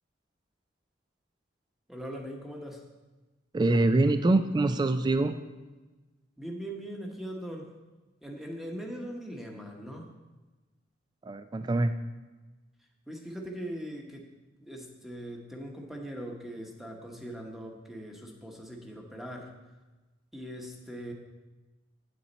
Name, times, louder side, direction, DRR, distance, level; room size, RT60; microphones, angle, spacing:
voice 1, 1.9-2.8 6.4-7.7 8.2-10.1 13.1-14.3 14.6-19.6 20.3-21.1, equal, ahead, 0 dB, 1.0 m, -40 dB
voice 2, 3.5-5.4 11.2-11.9, right 2 dB, 20° right, 10 dB, 0.3 m, -24 dB
8.6 x 8.5 x 4.1 m, 1.2 s
head